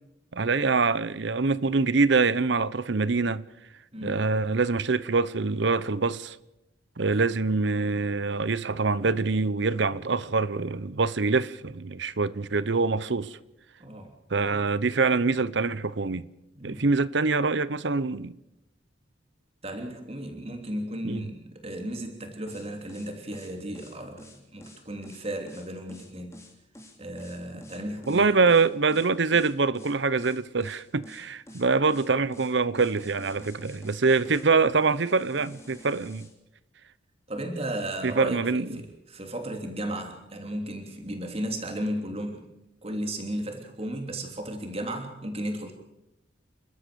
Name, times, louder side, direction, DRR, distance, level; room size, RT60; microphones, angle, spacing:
voice 1, 0.3-3.4 4.0-6.4 7.0-13.4 14.3-16.3 16.6-18.3 21.0-21.2 28.1-36.3 38.0-38.8, right 4 dB, 65° right, 0.8 m, -25 dB
voice 2, 13.8-14.1 16.5-16.9 19.6-26.4 27.0-28.3 37.3-42.4 42.8-45.7, right 1 dB, 30° right, 3.2 m, -35 dB
sound 1, 22.5-36.3, equal, 15° left, 3.1 m, -49 dB
29.5 x 13.0 x 6.9 m
head